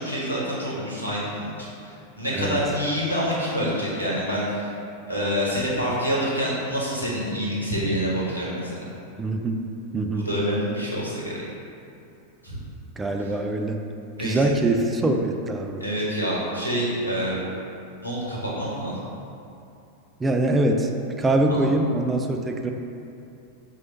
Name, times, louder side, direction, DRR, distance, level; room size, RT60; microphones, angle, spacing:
voice 1, 0.0-4.7 5.1-8.8 10.1-11.4 12.4-12.6 13.2-13.3 14.2-14.4 15.8-17.4 18.0-18.9 21.5-21.6, equal, 85° left, -6 dB, 0.9 m, -27 dB
voice 2, 9.2-9.6 9.9-10.3 13.0-13.8 14.2-15.8 20.2-20.9 21.2-22.7, right 2 dB, 15° right, 3 dB, 0.3 m, -23 dB
4.7 x 2.7 x 4.0 m, 2.7 s
figure-of-eight pair, 90°, 0 cm